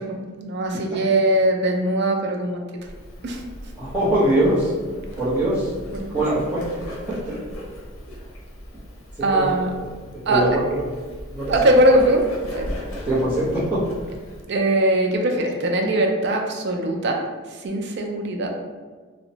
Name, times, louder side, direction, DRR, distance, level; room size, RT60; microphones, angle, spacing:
voice 1, 0.0-2.6 3.2-3.4 5.9-6.2 9.2-9.7 10.3-10.5 11.5-12.3 12.5-12.7 14.5-17.2 17.5-18.5, right 1 dB, 55° right, 2 dB, 0.4 m, -21 dB
Bird, 2.8-14.4, equal, 75° left, 0.6 m, -37 dB
voice 2, 3.8-4.7 5.2-5.7 6.1-6.6 7.1-7.4 9.2-9.8 10.3-10.8 11.3-11.5 13.1-13.8, right 1 dB, 5° right, -10 dB, 0.7 m, -22 dB
2.8 x 2.1 x 2.6 m, 1.4 s
head